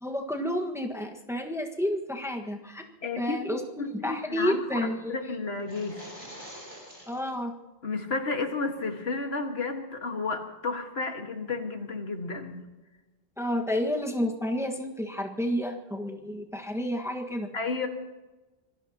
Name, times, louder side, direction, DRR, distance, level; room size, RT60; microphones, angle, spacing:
voice 1, 0.0-2.8 3.2-5.1 7.1-7.5 13.4-17.5, equal, 5° right, 2 dB, 1.5 m, -30 dB
voice 2, 3.0-6.0 7.8-12.6 17.5-17.9, left 3 dB, 65° left, 4 dB, 1.9 m, -32 dB
sound 1, 5.5-7.3, equal, 30° right, 6.8 m, -45 dB
26.0 x 19.0 x 2.9 m, 1.1 s
omnidirectional pair, 1.1 m